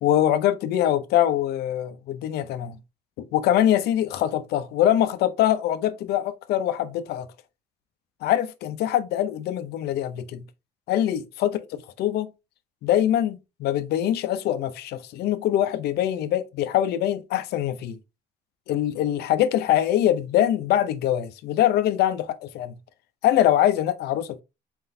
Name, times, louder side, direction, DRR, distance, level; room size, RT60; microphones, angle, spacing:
voice 1, 0.0-2.8 3.2-7.3 8.2-10.4 10.9-11.6 12.0-12.3 12.8-18.0 18.7-22.7 23.2-24.4, left 11 dB, 75° left, 0.5 m, -23 dB
4.3 x 3.9 x 2.6 m
cardioid pair, 110°, 17 cm